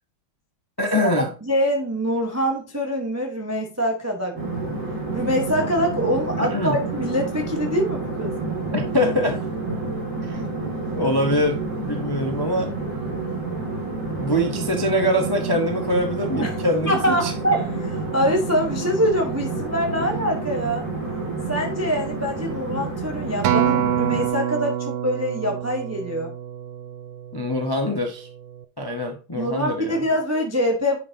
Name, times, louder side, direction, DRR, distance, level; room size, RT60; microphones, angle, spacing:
voice 1, 0.8-1.3 6.4-6.8 8.7-9.4 10.2-10.4 10.9-12.7 14.1-17.3 27.3-28.3 28.8-30.0, left 1 dB, 30° left, 3 dB, 0.4 m, -24 dB
voice 2, 1.4-4.6 5.1-8.3 16.4-16.6 16.9-20.9 21.5-26.3 29.3-31.0, equal, 10° right, 2 dB, 0.7 m, -24 dB
sound 1, 4.3-24.3, right 3 dB, 40° right, 2.4 m, -29 dB
Acoustic guitar, 23.4-27.9 28.5-28.6, right 10 dB, 70° right, 0.9 m, -26 dB
9.5 x 5.3 x 2.7 m, 0.34 s
omnidirectional pair, 2.1 m